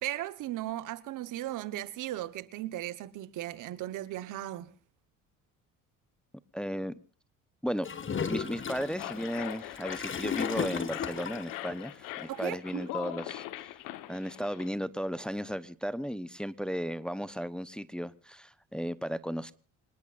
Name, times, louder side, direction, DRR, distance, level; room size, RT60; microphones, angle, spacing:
voice 1, 0.0-4.7 12.3-12.9, right 14 dB, 70° right, 1.3 m, -37 dB
voice 2, 6.5-6.9 7.6-7.9 8.3-13.4 14.1-19.5, equal, 5° left, 0.9 m, -35 dB
Gurgling / Toilet flush, 7.8-11.6, left 7 dB, 40° left, 1.9 m, -35 dB
sound 1, 8.5-14.7, left 15 dB, 85° left, 1.3 m, -42 dB
26.0 x 19.0 x 2.6 m
cardioid pair, 90°, 32 cm